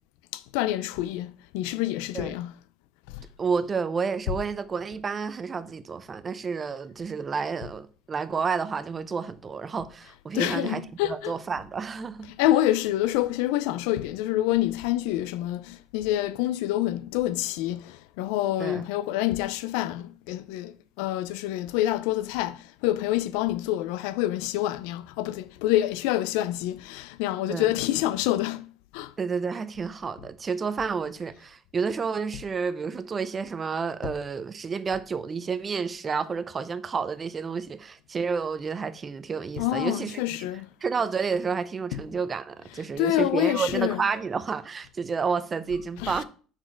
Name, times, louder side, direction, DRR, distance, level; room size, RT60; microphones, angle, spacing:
voice 1, 0.5-1.3 1.5-2.5 10.3-11.3 12.4-28.7 28.9-29.1 39.6-40.6 41.9-42.0 43.0-44.0 46.0-46.1, left 14 dB, 85° left, 0.4 m, -27 dB
voice 2, 3.4-12.3 18.6-18.9 27.5-27.7 29.2-46.2, right 5 dB, 25° right, 0.5 m, -30 dB
6.1 x 4.4 x 4.5 m
cardioid pair, 125°, 0 cm